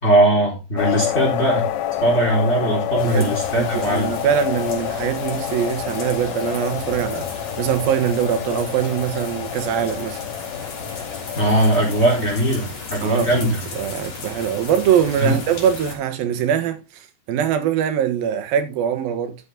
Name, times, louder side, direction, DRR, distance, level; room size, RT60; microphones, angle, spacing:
voice 1, 0.0-1.7 2.0-4.1 11.4-13.6 15.2-15.4, right 1 dB, 20° left, 3.7 m, -19 dB
sound 1, 0.8-12.3, left 12 dB, 85° left, 1.5 m, -28 dB
sound 2, 3.0-15.9, left 4 dB, 45° left, 4.0 m, -34 dB
voice 2, 3.1-7.3 7.6-10.2 13.0-19.4, right 9 dB, 80° right, 3.0 m, -23 dB
12.5 x 7.0 x 3.6 m
omnidirectional pair, 4.1 m